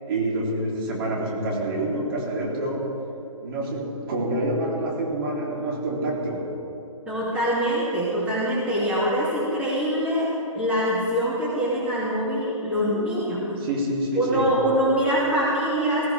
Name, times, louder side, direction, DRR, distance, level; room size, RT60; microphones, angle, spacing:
voice 1, 0.1-2.9 3.4-6.5 12.8-14.5, right 1 dB, 40° right, -3 dB, 3.6 m, -27 dB
voice 2, 7.1-10.3 10.5-13.4 14.2-16.0, equal, 5° right, -9 dB, 2.7 m, -24 dB
20.5 x 15.0 x 3.6 m, 2.8 s
figure-of-eight pair, 145°, 18 cm